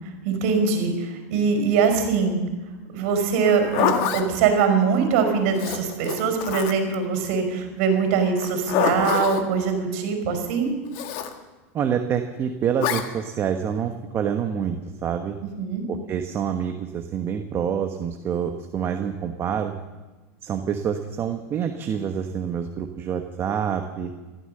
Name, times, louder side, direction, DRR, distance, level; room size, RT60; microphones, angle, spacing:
voice 1, 0.2-2.4 2.9-10.7 15.6-15.8, right 5 dB, 65° right, 5 dB, 5.2 m, -22 dB
Zipper (clothing), 3.4-4.3 5.6-7.0 8.4-9.4 10.9-11.3 12.8-13.1, left 9 dB, 55° left, 1.7 m, -25 dB
voice 2, 11.7-15.4 15.9-19.7 20.4-24.1, right 8 dB, 30° right, 5 dB, 1.2 m, -27 dB
15.0 x 13.5 x 6.7 m, 1.2 s
supercardioid pair, 130°, 8 cm